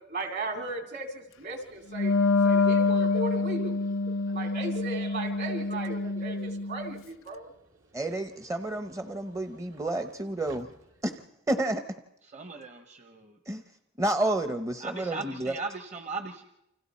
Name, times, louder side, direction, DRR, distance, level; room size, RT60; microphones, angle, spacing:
voice 1, 0.0-2.2 2.4-3.8 4.3-7.5, right 2 dB, 55° right, 4 dB, 2.7 m, -36 dB
Subway metro underground, 1.5-11.3, right 2 dB, 75° right, 2.1 m, -48 dB
Wind instrument woodwind instrument, 1.9-7.0, left 3 dB, 75° left, 0.7 m, -26 dB
voice 2, 7.9-10.7 11.0-11.1 11.5-11.8 13.5-13.6 14.0-15.5, right 1 dB, 15° right, 8 dB, 0.7 m, -30 dB
voice 3, 12.2-13.4 14.8-16.4, right 4 dB, 35° right, 6 dB, 1.0 m, -38 dB
29.0 x 26.0 x 4.2 m, 0.87 s
head